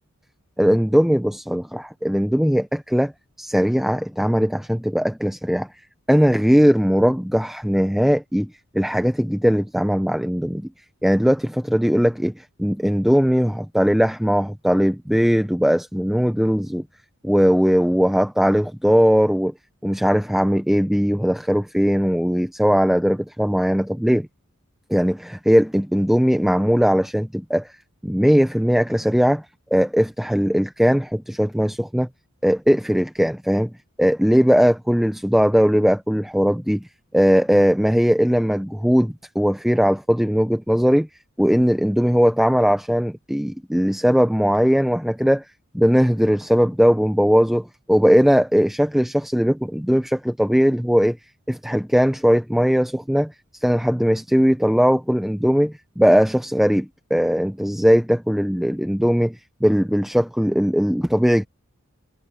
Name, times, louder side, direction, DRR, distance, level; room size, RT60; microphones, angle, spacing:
voice 1, 0.6-3.1 3.4-5.7 6.1-8.5 8.7-10.6 11.0-16.8 17.2-19.5 19.8-24.3 24.9-27.7 28.0-29.4 29.7-32.1 32.4-33.7 34.0-36.8 37.1-41.1 41.4-45.4 45.7-51.2 51.5-59.4 59.6-61.4, equal, ahead, 0.5 m, -19 dB
head